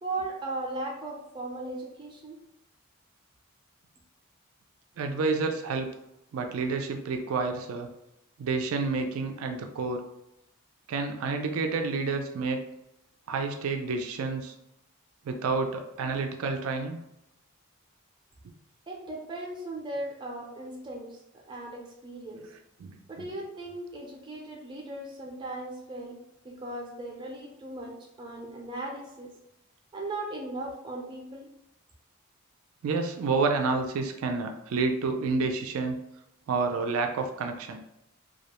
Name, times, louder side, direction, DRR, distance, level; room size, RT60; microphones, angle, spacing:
voice 1, 0.0-2.4 18.9-21.2 21.5-22.4 23.1-26.2 26.4-27.9 28.2-29.3 29.9-31.5, right 2 dB, 20° right, -1 dB, 0.5 m, -37 dB
voice 2, 5.0-5.9 6.3-7.9 8.4-10.1 10.9-12.6 13.3-14.5 15.2-17.0 18.4-18.5 22.8-23.3 32.8-36.0 36.5-37.8, right 4 dB, 85° right, 5 dB, 0.3 m, -29 dB
2.3 x 2.0 x 2.9 m, 0.84 s
head